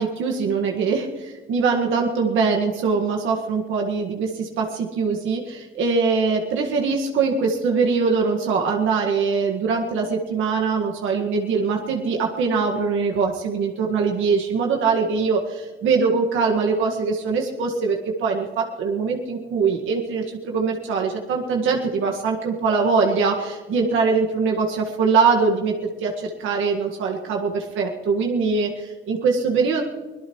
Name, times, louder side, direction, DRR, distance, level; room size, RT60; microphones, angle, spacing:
voice 1, 0.0-25.7 26.0-29.8, right 5 dB, 85° right, 1 dB, 1.8 m, -22 dB
24.5 x 18.0 x 3.2 m, 1.3 s
cardioid pair, 90°, 20 cm